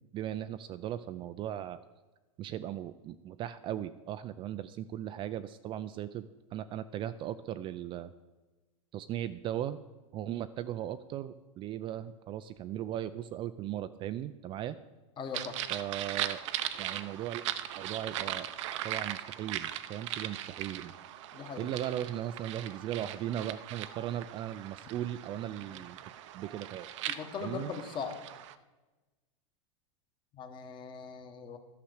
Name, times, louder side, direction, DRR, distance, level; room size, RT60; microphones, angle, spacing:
voice 1, 0.1-1.8 2.4-6.3 6.5-8.1 8.9-9.8 10.1-14.8 15.7-16.4 16.8-17.4 17.8-18.5 18.8-20.9 21.6-26.0 26.3-26.9 27.4-27.7, right 11 dB, 30° right, 12 dB, 0.4 m, -37 dB
voice 2, 15.2-15.6 21.3-21.7 25.7-25.8 27.1-28.2 30.3-31.6, left 6 dB, 30° left, 6 dB, 1.3 m, -40 dB
sound 1, 15.3-28.5, right 12 dB, 65° right, 0.6 m, -39 dB
12.0 x 5.8 x 6.5 m, 1.2 s
hypercardioid pair, 120°, 17 cm